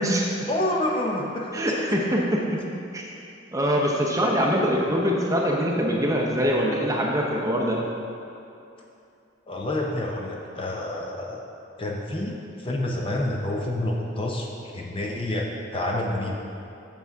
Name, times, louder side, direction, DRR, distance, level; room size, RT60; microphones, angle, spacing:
voice 1, 0.2-1.6 4.7-4.9 9.5-11.4 11.8-16.4, left 1 dB, 25° left, -1 dB, 0.6 m, -28 dB
voice 2, 1.5-2.4 2.9-3.1 3.5-7.8, equal, 15° right, -2 dB, 0.7 m, -23 dB
7.1 x 6.0 x 4.6 m, 2.7 s
head